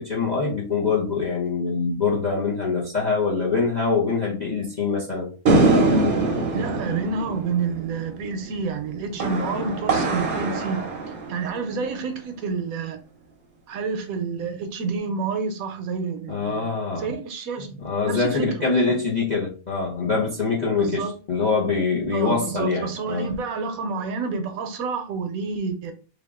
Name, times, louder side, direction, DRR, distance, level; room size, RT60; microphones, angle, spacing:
voice 1, 0.0-5.3 16.3-17.1 17.8-23.3, left 4 dB, 45° left, 0.6 m, -24 dB
sound 1, 5.5-12.0, right 2 dB, 45° right, 0.7 m, -23 dB
voice 2, 6.5-10.8 11.3-13.0 13.7-16.7 17.0-17.7 18.0-19.0 20.7-21.1 22.1-25.9, right 5 dB, 70° right, 1.0 m, -29 dB
3.5 x 2.3 x 3.5 m
omnidirectional pair, 1.6 m